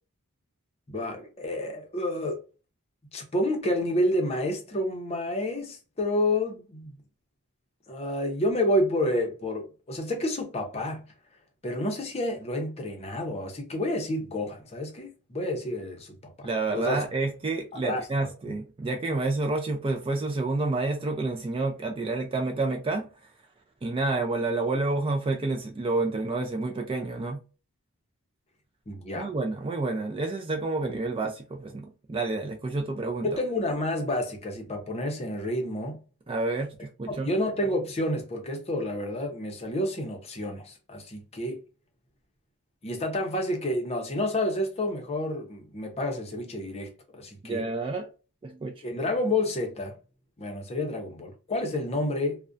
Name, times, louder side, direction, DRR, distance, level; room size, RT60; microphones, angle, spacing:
voice 1, 0.9-2.4 3.1-6.9 7.9-11.0 11.6-17.0 17.8-18.0 28.9-29.3 33.2-36.0 37.1-41.6 42.8-47.6 48.8-49.9 50.4-52.4, left 1 dB, 30° left, 0.6 m, -29 dB
voice 2, 16.4-23.1 23.8-27.4 29.1-33.4 36.3-37.3 47.4-48.1 48.4-48.7, right 3 dB, 25° right, 0.3 m, -29 dB
2.4 x 2.1 x 2.4 m
head